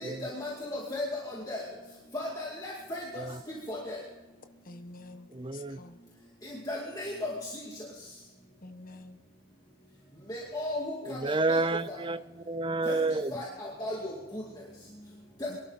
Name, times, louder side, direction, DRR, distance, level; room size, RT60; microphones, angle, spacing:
voice 1, 0.0-1.0 1.5-1.6 2.1-3.2 3.7-4.0 6.7-7.3 10.3-11.2 11.5-11.6 12.9-13.0 13.3-13.5 13.8-13.9, left 1 dB, 20° left, -4 dB, 2.3 m, -35 dB
voice 2, 4.6-6.0 8.6-9.2 15.5-15.6, left 2 dB, 40° left, 7 dB, 1.3 m, -48 dB
voice 3, 5.3-5.8 11.0-13.3, right 2 dB, 20° right, 14 dB, 0.5 m, -30 dB
23.5 x 12.5 x 4.1 m, 1.2 s
head